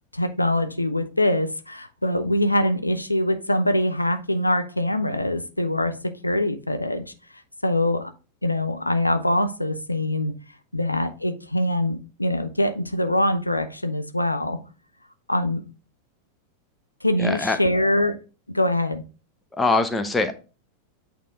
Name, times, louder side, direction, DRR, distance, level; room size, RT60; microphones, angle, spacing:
voice 1, 0.1-7.0 7.6-8.1 8.4-10.3 10.7-14.6 15.3-15.6 17.0-18.2 18.5-19.0, left 1 dB, 85° left, 8 dB, 0.5 m, -23 dB
voice 2, 17.2-17.6 19.5-20.3, left 3 dB, 10° left, 8 dB, 0.8 m, -22 dB
8.5 x 3.6 x 3.6 m, 0.33 s
figure-of-eight pair, 90°, 0 cm